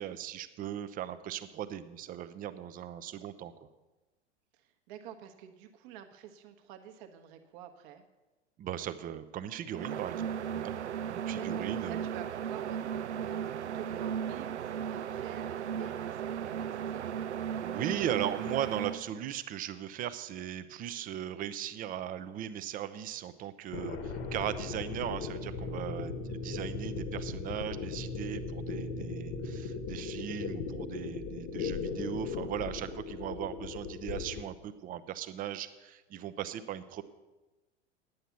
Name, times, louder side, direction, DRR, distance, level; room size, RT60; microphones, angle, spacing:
voice 1, 0.0-3.5 8.6-10.7 11.1-12.0 17.6-37.0, right 10 dB, 25° right, 12 dB, 0.6 m, -38 dB
voice 2, 4.5-8.0 11.3-17.1 31.8-32.3, right 10 dB, 45° right, 6 dB, 1.2 m, -49 dB
sound 1, 9.7-19.0, right 8 dB, 80° right, 0.5 m, -36 dB
sound 2, 23.7-34.4, left 4 dB, 40° left, 1.3 m, -38 dB
sound 3, 25.1-33.3, left 2 dB, 10° left, 1.1 m, -52 dB
10.0 x 7.8 x 7.0 m, 1.1 s
figure-of-eight pair, 85°, 34 cm